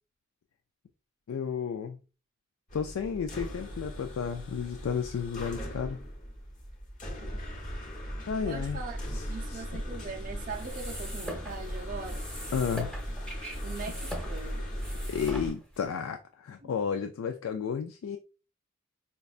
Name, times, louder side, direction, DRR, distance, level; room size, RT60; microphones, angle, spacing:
voice 1, 1.3-2.0 2.7-6.0 8.3-8.8 9.1-9.8 12.5-12.9 15.1-18.2, left 6 dB, 85° left, 0.3 m, -32 dB
sound 1, 2.7-15.5, equal, 40° left, 0.9 m, -38 dB
voice 2, 8.5-12.2 13.6-14.7 16.6-16.7, right 5 dB, 40° right, 0.5 m, -41 dB
sound 2, 10.4-15.8, equal, 5° left, 0.7 m, -42 dB
5.1 x 2.2 x 2.4 m
head